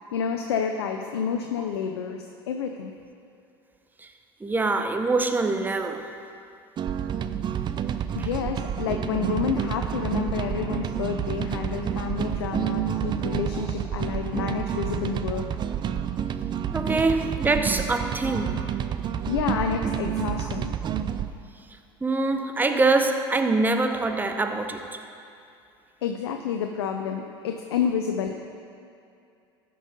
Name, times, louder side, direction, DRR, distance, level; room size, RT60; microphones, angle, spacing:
voice 1, 0.0-2.9 8.1-15.5 19.3-20.7 26.0-28.3, left 7 dB, 80° left, 4 dB, 0.6 m, -29 dB
voice 2, 4.4-6.1 8.2-8.3 16.7-18.6 22.0-24.8, right 3 dB, 15° right, 6 dB, 0.8 m, -24 dB
sound 1, 6.8-21.3, right 9 dB, 35° right, 0.5 m, -29 dB
13.5 x 5.5 x 5.4 m, 2.5 s
hypercardioid pair, 80°, 13 cm